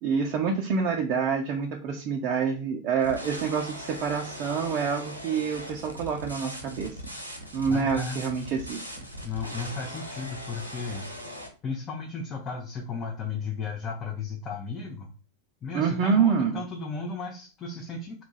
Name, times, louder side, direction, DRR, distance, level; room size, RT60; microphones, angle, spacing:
voice 1, 0.0-7.0 7.5-8.9 15.7-16.6, right 6 dB, 40° right, 1 dB, 0.5 m, -27 dB
sound 1, 3.0-11.5, equal, 90° right, 0.8 m, -40 dB
voice 2, 7.7-8.2 9.2-11.1 11.6-15.1 15.6-18.2, left 4 dB, 25° left, -1 dB, 0.7 m, -35 dB
3.0 x 2.4 x 3.8 m, 0.35 s
figure-of-eight pair, 90°, 0 cm